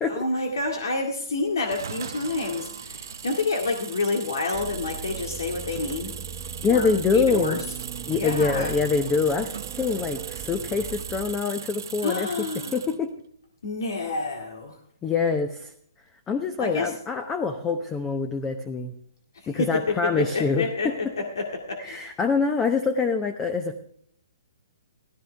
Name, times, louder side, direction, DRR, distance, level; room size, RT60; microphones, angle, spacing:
voice 1, 0.0-6.2 6.7-7.6 8.2-8.7 12.0-12.8 13.6-14.8 16.6-16.9 19.3-22.1, left 3 dB, 80° left, 2 dB, 2.1 m, -28 dB
sound 1, 1.6-13.0, right 7 dB, 70° right, 0.8 m, -38 dB
sound 2, 4.5-11.3, right 8 dB, 30° right, 0.7 m, -39 dB
voice 2, 6.6-7.6 8.1-12.3 12.7-13.1 15.0-15.7 16.3-18.9 19.5-20.9 21.8-23.8, left 5 dB, 15° left, 8 dB, 0.8 m, -25 dB
16.0 x 14.5 x 3.4 m, 0.65 s
hypercardioid pair, 155°, 2 cm